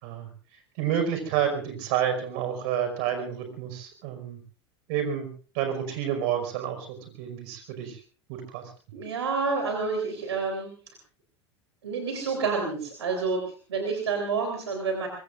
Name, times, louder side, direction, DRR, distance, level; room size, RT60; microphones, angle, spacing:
voice 1, 0.8-4.4 4.9-5.3 5.5-8.0 8.3-8.7, right 9 dB, 55° right, 7 dB, 5.3 m, -29 dB
voice 2, 8.9-10.7 11.8-15.1, right 4 dB, 75° right, 3 dB, 3.8 m, -29 dB
24.0 x 23.5 x 2.5 m, 0.38 s
figure-of-eight pair, 80°, 14 cm